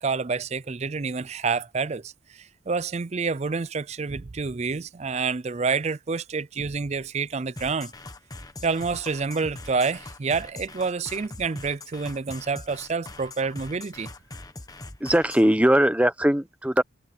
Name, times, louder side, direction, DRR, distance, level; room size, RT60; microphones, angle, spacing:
voice 1, 0.0-7.9 8.6-14.1, right 4 dB, 35° right, 0.4 m, -28 dB
sound 1, 7.6-15.5, left 2 dB, 20° left, 1.2 m, -42 dB
voice 2, 15.0-16.8, right 1 dB, 5° right, 0.9 m, -20 dB
head